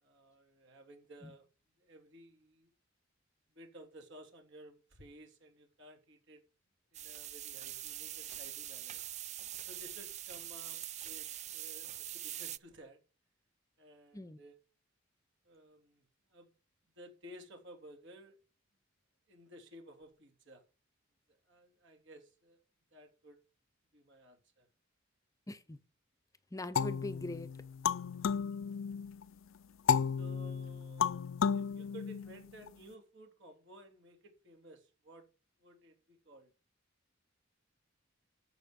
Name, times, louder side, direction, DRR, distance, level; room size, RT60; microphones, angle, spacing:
voice 1, 0.0-1.5 1.8-2.7 3.5-6.4 6.9-9.0 9.7-11.3 11.5-13.0 13.8-14.6 15.4-16.0 16.3-16.5 16.9-18.4 19.3-20.6 21.5-22.6 22.9-23.4 23.9-24.7 28.3-28.4 30.2-35.2 35.6-36.5, equal, 65° right, 3.5 m, -55 dB
sound 1, 6.9-12.6, right 12 dB, 35° right, 0.4 m, -43 dB
voice 2, 25.5-25.8 26.5-27.5, left 1 dB, 15° left, 0.7 m, -42 dB
sound 2, 26.8-29.2 29.9-32.7, left 7 dB, 75° left, 0.5 m, -33 dB
14.5 x 5.5 x 5.3 m
head